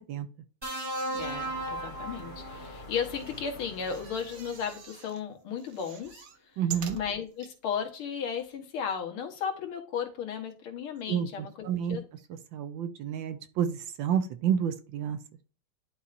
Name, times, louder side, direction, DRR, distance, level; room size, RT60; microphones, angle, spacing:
sound 1, 0.6-2.9 4.2-4.4, right 1 dB, 10° right, 2.6 m, -35 dB
voice 1, 1.1-6.6 6.9-12.0, left 7 dB, 75° left, 3 dB, 2.2 m, -35 dB
sound 2, 1.1-4.9, left 2 dB, 35° left, 0.9 m, -47 dB
sound 3, 3.1-5.2 5.6-7.5 8.1-8.2 8.4-8.5, right 8 dB, 60° right, 1.0 m, -45 dB
voice 2, 6.6-7.0 11.1-12.0 12.5-15.2, right 8 dB, 75° right, 10 dB, 1.3 m, -30 dB
11.0 x 4.3 x 2.5 m, 0.37 s
omnidirectional pair, 2.4 m